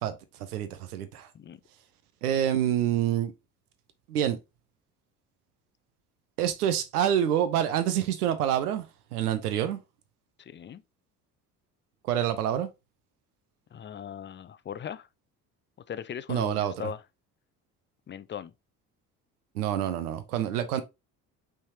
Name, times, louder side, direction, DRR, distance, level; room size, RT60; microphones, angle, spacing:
voice 1, 0.5-1.3 2.2-3.3 4.1-4.4 6.4-8.8 9.1-9.8 12.1-12.7 16.3-16.7 19.6-20.8, right 10 dB, 90° right, 0.6 m, -27 dB
voice 2, 10.4-10.8 13.7-15.1 15.9-17.0 18.1-18.5, left 8 dB, 25° left, 0.5 m, -39 dB
5.4 x 3.5 x 2.7 m
hypercardioid pair, 55°, 45 cm